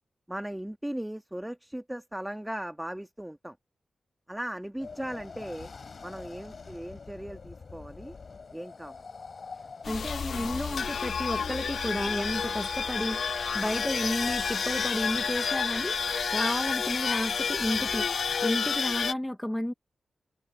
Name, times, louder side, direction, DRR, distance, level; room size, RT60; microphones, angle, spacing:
voice 1, 0.3-3.6 4.3-5.7 6.0-8.2 8.5-9.0, right 1 dB, 10° right, 2.2 m, -38 dB
sound 1, 4.8-18.5, left 4 dB, 60° left, 6.1 m, -47 dB
sound 2, 9.8-19.1, left 6 dB, 75° left, 0.4 m, -30 dB
voice 2, 9.9-16.0 16.3-18.1 18.4-19.7, left 1 dB, 10° left, 0.9 m, -32 dB
sound 3, 11.7-16.9, right 7 dB, 85° right, 4.1 m, -45 dB
cardioid pair, 60°, 0 cm